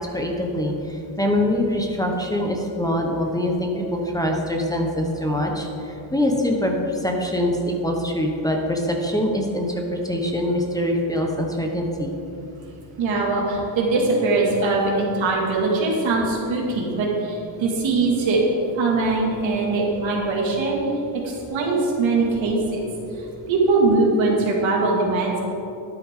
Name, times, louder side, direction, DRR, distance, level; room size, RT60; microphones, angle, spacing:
voice 1, 0.0-12.1, left 1 dB, 10° left, 1 dB, 1.2 m, -24 dB
voice 2, 13.0-18.4 18.7-20.8 21.2-22.8 23.2-25.4, right 3 dB, 80° right, -2 dB, 2.6 m, -21 dB
12.0 x 9.9 x 3.8 m, 2.9 s
cardioid pair, 105°, 46 cm